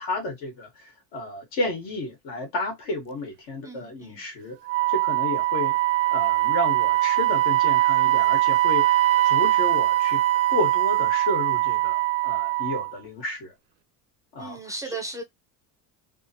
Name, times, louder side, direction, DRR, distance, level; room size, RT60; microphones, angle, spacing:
voice 1, 0.0-4.6 4.9-5.8 6.1-10.2 10.5-13.5 14.3-14.9, left 2 dB, 65° left, 1.8 m, -32 dB
voice 2, 3.6-4.2 14.4-15.2, right 3 dB, 10° right, 0.4 m, -36 dB
Wind instrument woodwind instrument, 4.7-12.9, right 16 dB, 85° right, 0.5 m, -22 dB
3.5 x 2.1 x 2.9 m
cardioid pair, 165°, 38 cm